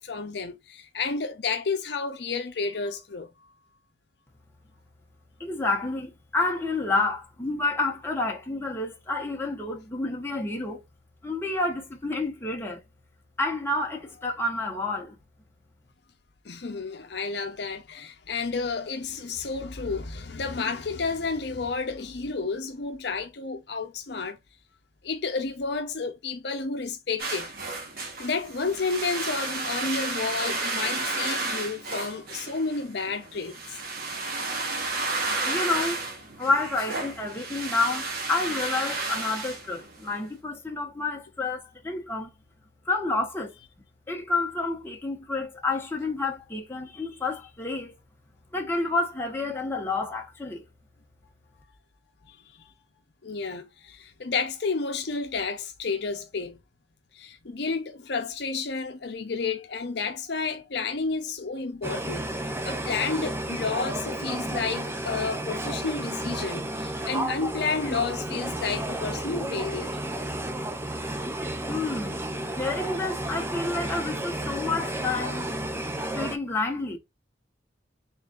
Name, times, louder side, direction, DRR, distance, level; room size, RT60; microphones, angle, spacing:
voice 1, 0.0-3.3 16.4-24.4 25.0-27.5 28.0-33.8 52.2-52.7 53.2-56.6 57.1-70.0, left 4 dB, 60° left, 0.7 m, -31 dB
voice 2, 5.4-10.8 11.2-12.8 13.4-15.2 35.4-36.0 36.4-42.3 42.8-43.5 44.1-48.0 48.5-50.7 71.7-72.2 72.5-75.5 76.1-77.0, left 3 dB, 15° left, 1.1 m, -29 dB
sound 1, 27.2-40.2, right 3 dB, 55° right, 1.3 m, -32 dB
sound 2, 61.8-76.4, right 1 dB, 15° right, 0.5 m, -32 dB
4.0 x 3.7 x 2.5 m
head